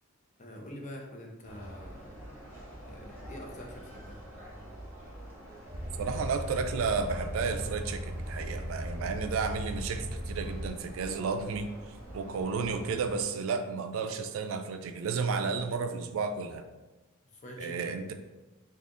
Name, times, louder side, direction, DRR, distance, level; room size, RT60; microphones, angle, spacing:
voice 1, 0.4-2.2 2.8-4.2 17.3-17.9, left 1 dB, 35° left, 0 dB, 0.6 m, -45 dB
sound 1, 1.4-13.2, right 1 dB, 10° right, 1.1 m, -47 dB
sound 2, 5.7-10.7, equal, 45° right, 0.9 m, -37 dB
voice 2, 6.0-11.7 12.1-16.6 17.6-18.1, right 5 dB, 70° right, 7 dB, 0.4 m, -32 dB
3.7 x 2.4 x 3.7 m, 1.1 s
head